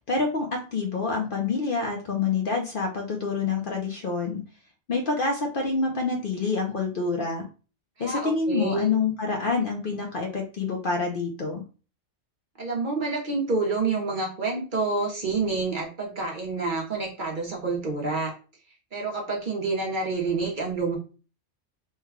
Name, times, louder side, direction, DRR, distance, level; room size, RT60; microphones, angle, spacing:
voice 1, 0.0-4.4 4.9-7.5 8.0-11.6, left 4 dB, 55° left, 2 dB, 0.7 m, -27 dB
voice 2, 8.0-8.9 12.6-18.3 18.9-21.0, right 3 dB, 45° right, 0 dB, 0.8 m, -28 dB
3.2 x 2.2 x 3.5 m, 0.35 s
omnidirectional pair, 1.2 m